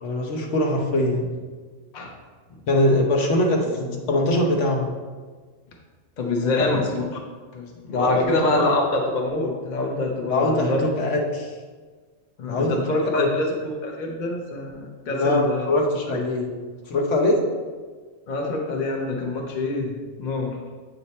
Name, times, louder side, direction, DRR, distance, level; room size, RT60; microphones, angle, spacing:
voice 1, 0.0-1.3 2.7-4.9 6.4-6.9 7.9-8.7 10.3-11.5 12.4-12.8 13.2-13.3 15.0-16.5 16.9-17.4, left 1 dB, 70° left, 0 dB, 1.1 m, -22 dB
voice 2, 6.2-7.2 7.5-10.9 12.4-15.7 16.1-16.2 18.3-20.6, left 2 dB, 40° left, 1 dB, 0.8 m, -25 dB
8.1 x 2.8 x 4.2 m, 1.5 s
omnidirectional pair, 1.3 m